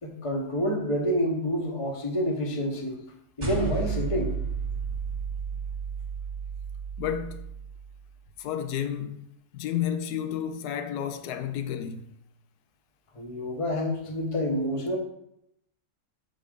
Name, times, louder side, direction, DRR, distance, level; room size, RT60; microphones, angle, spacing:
voice 1, 0.0-3.0 3.4-4.3 13.1-15.0, equal, 25° left, 0.9 m, -28 dB
sound 1, 3.4-8.0, right 5 dB, 30° right, 1.5 m, -33 dB
voice 2, 7.0-7.5 8.4-9.3 9.5-12.1, left 9 dB, 85° left, 1.1 m, -31 dB
6.4 x 4.1 x 5.0 m
omnidirectional pair, 1.6 m